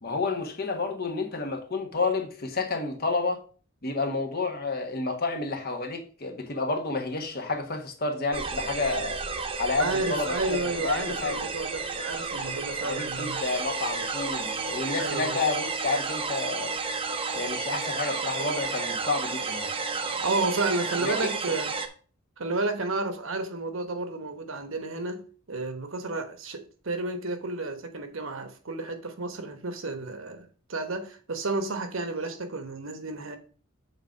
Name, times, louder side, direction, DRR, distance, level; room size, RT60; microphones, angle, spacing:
voice 1, 0.0-3.4 3.8-9.2 9.6-10.6 10.8-11.4 12.8-16.7 17.3-19.7 21.0-21.1, left 3 dB, 50° left, 1.5 m, -30 dB
sound 1, 8.3-21.9, right 4 dB, 25° right, 0.7 m, -32 dB
voice 2, 9.8-13.4 15.0-15.4 20.2-21.7 22.4-33.4, right 3 dB, 70° right, 1.1 m, -31 dB
6.9 x 4.0 x 5.8 m
head